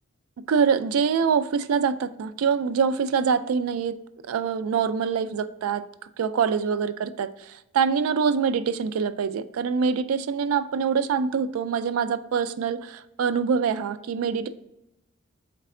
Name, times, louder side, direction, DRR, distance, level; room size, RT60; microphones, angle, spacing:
voice 1, 0.4-4.0 4.2-5.8 6.2-14.5, right 6 dB, 70° right, 13 dB, 0.3 m, -25 dB
4.1 x 3.3 x 3.7 m, 0.87 s
head